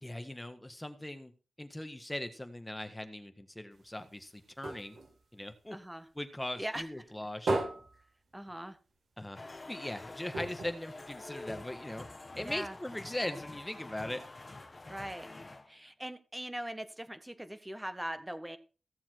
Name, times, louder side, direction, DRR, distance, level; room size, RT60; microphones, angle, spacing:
voice 1, 0.0-1.3 1.6-5.0 5.3-5.8 6.1-7.5 9.2-9.4 9.7-12.1 12.3-14.2, left 1 dB, 10° left, 8 dB, 1.6 m, -40 dB
sound 1, 3.7-6.4 6.7-9.0 9.3-9.4 9.7-9.8 10.3-11.8 12.4-12.5, right 2 dB, 80° right, 5.7 m, -38 dB
voice 2, 5.7-6.1 6.6-7.1 8.3-8.8 12.4-12.8 14.9-15.3 15.7-18.6, right 1 dB, 10° right, 10 dB, 1.3 m, -41 dB
sound 2, 9.3-15.7, left 2 dB, 30° left, 1.2 m, -47 dB
16.0 x 7.2 x 4.6 m, 0.36 s
wide cardioid pair, 105°, 0 cm